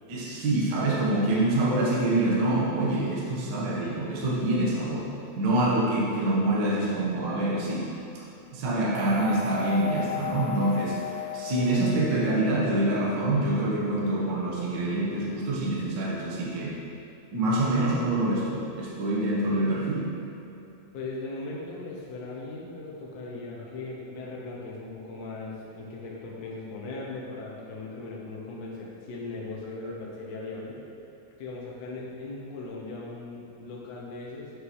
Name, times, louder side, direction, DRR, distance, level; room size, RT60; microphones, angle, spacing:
voice 1, 0.1-5.1 5.4-7.9 8.5-11.0 11.3-16.7 17.3-20.1, right 1 dB, 55° right, -5 dB, 1.3 m, -26 dB
sound 1, 8.9-13.2, left 5 dB, 75° right, 1.9 m, -35 dB
voice 2, 20.9-30.8 31.4-34.5, left 3 dB, 75° left, -4 dB, 0.8 m, -38 dB
7.4 x 6.6 x 3.1 m, 2.8 s
omnidirectional pair, 3.3 m